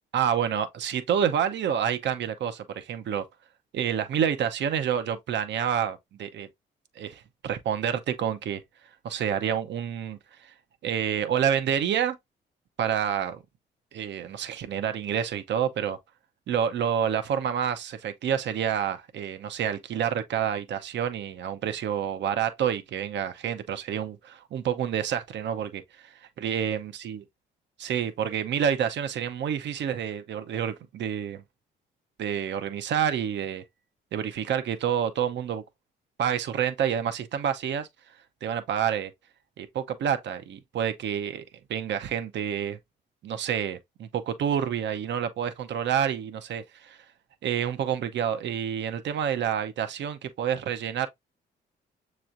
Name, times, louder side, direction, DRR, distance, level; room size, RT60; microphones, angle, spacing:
voice 1, 0.1-3.2 3.7-6.5 7.0-8.6 9.0-10.5 10.8-12.2 12.8-13.4 13.9-16.0 16.5-27.2 27.8-31.4 32.2-33.6 34.1-35.6 36.2-37.9 38.4-39.1 39.6-41.4 41.7-42.8 43.2-47.0 47.4-51.1, right 8 dB, 65° right, 0.8 m, -28 dB
6.9 x 3.1 x 2.5 m
cardioid pair, 90°, 20 cm